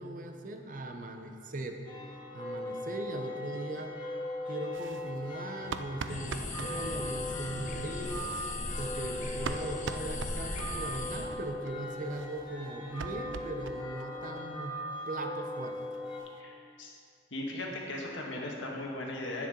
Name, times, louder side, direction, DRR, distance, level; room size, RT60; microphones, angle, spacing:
voice 1, 0.0-1.8 2.3-3.9 4.5-8.4 8.8-15.8, right 2 dB, 45° right, 4 dB, 0.8 m, -39 dB
sound 1, 1.8-16.2, left 1 dB, 25° left, 1.7 m, -40 dB
sound 2, 4.7-6.7 7.9-11.0 11.3-11.4 11.7-11.8 12.0-14.1 14.4-14.5 14.8-14.9 15.2-15.3 15.6-16.4, right 5 dB, 80° right, 0.4 m, -43 dB
sound 3, 6.1-11.3, left 2 dB, 40° left, 0.9 m, -38 dB
voice 2, 16.4-16.9 17.3-19.5, left 1 dB, 90° left, -1 dB, 1.6 m, -38 dB
10.0 x 9.1 x 3.9 m, 2.5 s
head